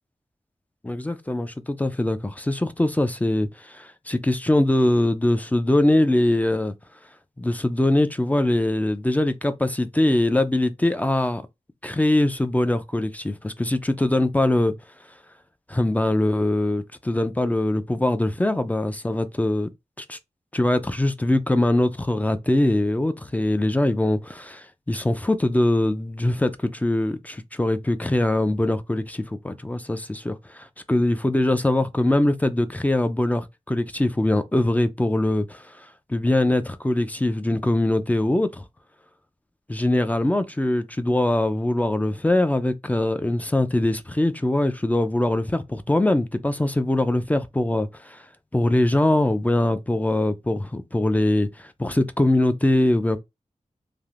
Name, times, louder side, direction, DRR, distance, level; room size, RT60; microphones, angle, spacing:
voice 1, 0.8-6.7 7.4-11.4 11.8-14.7 15.7-19.7 20.0-20.2 20.5-38.6 39.7-48.3 48.5-53.2, left 1 dB, 10° left, 0.3 m, -22 dB
3.3 x 2.5 x 2.4 m
wide cardioid pair, 115°, 13 cm